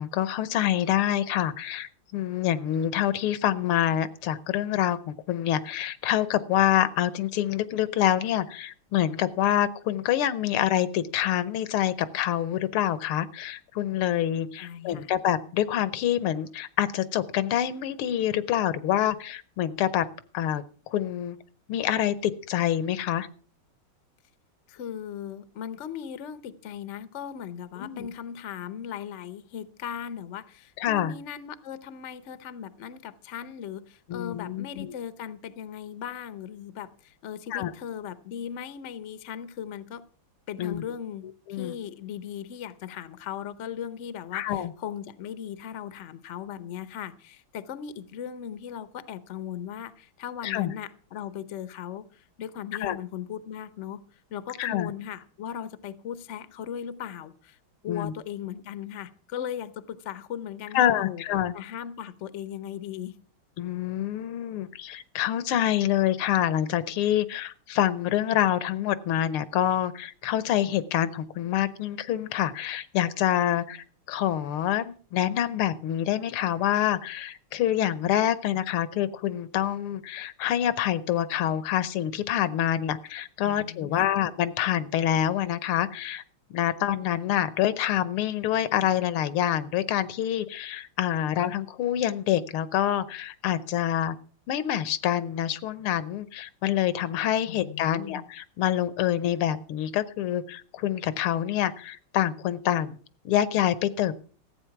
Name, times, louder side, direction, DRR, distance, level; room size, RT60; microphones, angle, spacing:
voice 1, 0.0-20.1 20.3-21.4 21.7-23.3 27.8-28.1 30.8-31.1 34.1-34.9 37.5-37.7 40.6-40.8 41.5-41.7 44.3-44.7 50.4-50.7 52.8-53.0 54.6-54.9 57.9-58.1 60.7-61.6 63.6-86.2 86.5-94.2 94.5-103.0 103.3-104.2, left 11 dB, 80° left, 16 dB, 1.7 m, -26 dB
voice 2, 14.6-15.1 24.7-40.0 40.5-54.0 54.3-57.6 57.8-61.2 61.5-63.1 83.4-84.1 97.5-98.3, left 9 dB, 60° left, 14 dB, 0.7 m, -38 dB
14.5 x 8.6 x 5.8 m, 0.42 s
omnidirectional pair, 2.4 m